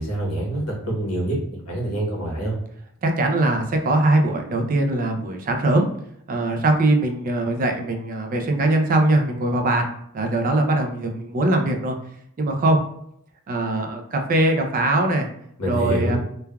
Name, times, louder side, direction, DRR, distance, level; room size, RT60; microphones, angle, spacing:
voice 1, 0.0-2.6 15.6-16.2, right 1 dB, 85° left, -3 dB, 1.0 m, -26 dB
voice 2, 3.0-5.9 6.3-9.9 10.1-12.0 12.4-12.8 13.5-15.3 15.7-16.2, right 2 dB, 40° right, 4 dB, 0.4 m, -21 dB
3.2 x 2.2 x 2.2 m, 0.72 s
head